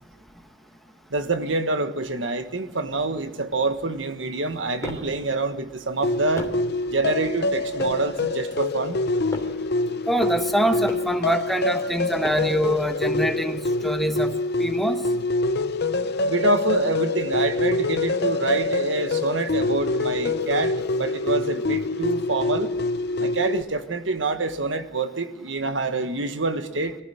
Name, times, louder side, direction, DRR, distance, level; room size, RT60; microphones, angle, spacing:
voice 1, 1.1-6.5 6.9-9.0 16.2-22.7 23.2-27.0, right 3 dB, 80° right, 9 dB, 1.5 m, -26 dB
sound 1, 4.4-5.2 5.9-6.8 7.4-8.1 8.8-9.7 10.4-11.2 11.9-12.7, left 1 dB, 15° left, 3.0 m, -38 dB
sound 2, 6.0-23.6, left 2 dB, 60° left, 0.7 m, -25 dB
voice 2, 10.1-15.1, equal, ahead, 6 dB, 1.2 m, -25 dB
23.5 x 14.5 x 8.0 m, 0.96 s
head